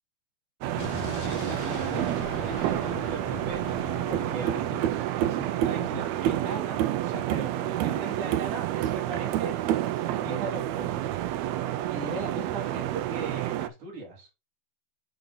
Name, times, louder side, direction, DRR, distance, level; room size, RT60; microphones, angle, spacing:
sound 1, 0.6-13.7, right 13 dB, 90° right, 1.5 m, -29 dB
Explosion, 0.8-5.6, left 6 dB, 60° left, 2.0 m, -40 dB
voice 1, 1.0-11.1 11.9-14.3, right 3 dB, 70° right, 4.2 m, -39 dB
8.9 x 4.0 x 3.9 m
omnidirectional pair, 3.7 m